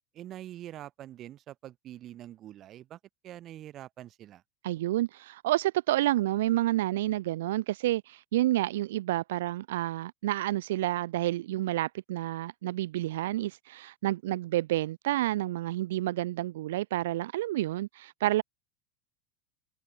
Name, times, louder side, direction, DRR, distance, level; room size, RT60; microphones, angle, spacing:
voice 1, 0.1-4.4, right 12 dB, 35° right, 3.5 m, -45 dB
voice 2, 4.6-18.4, right 15 dB, 80° right, 1.1 m, -29 dB
open air
supercardioid pair, 130°, 0 cm